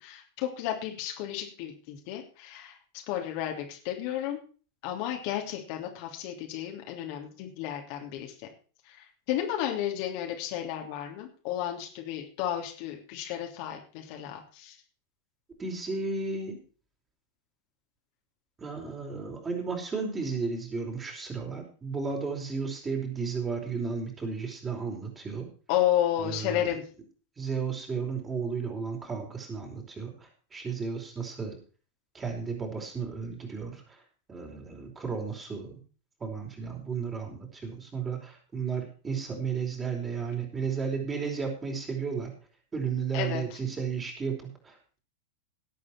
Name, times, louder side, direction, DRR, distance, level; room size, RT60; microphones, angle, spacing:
voice 1, 0.0-2.7 3.1-4.4 4.8-8.3 9.3-14.7 25.7-26.8 43.1-43.4, left 11 dB, 45° left, 2 dB, 3.0 m, -32 dB
voice 2, 15.6-16.6 18.6-25.5 26.2-26.8 27.4-31.6 32.1-34.0 34.3-35.8 36.2-42.4 42.7-45.0, right 5 dB, 20° right, 1 dB, 4.8 m, -33 dB
17.5 x 8.6 x 4.5 m, 0.39 s
figure-of-eight pair, 90°, 0 cm